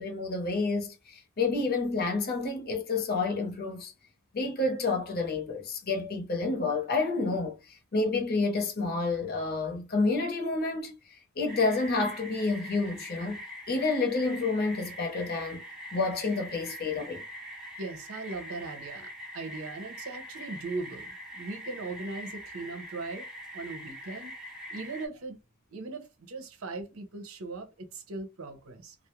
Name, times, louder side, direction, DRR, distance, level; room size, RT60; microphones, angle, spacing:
voice 1, 0.0-3.9 4.3-15.6 15.9-17.2, left 3 dB, 45° left, 0.7 m, -29 dB
sound 1, 11.5-25.1, equal, 5° right, 0.6 m, -43 dB
voice 2, 17.8-23.3 23.5-25.4 25.7-29.0, right 3 dB, 85° right, 0.7 m, -39 dB
2.3 x 2.0 x 3.0 m
head